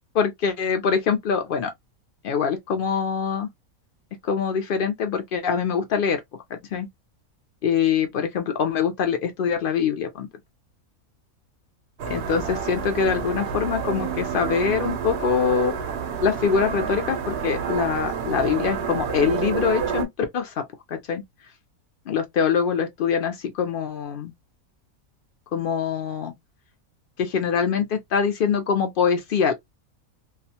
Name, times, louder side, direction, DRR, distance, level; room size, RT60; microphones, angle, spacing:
voice 1, 0.2-1.7 2.2-3.5 4.2-6.2 6.7-6.9 7.6-10.3 12.1-15.7 16.2-20.1 20.3-21.2 22.1-24.3 25.5-26.3 27.2-29.5, left 6 dB, 80° left, 0.4 m, -24 dB
sound 1, 12.0-20.1, right 6 dB, 60° right, 0.6 m, -29 dB
2.4 x 2.2 x 2.7 m
omnidirectional pair, 1.5 m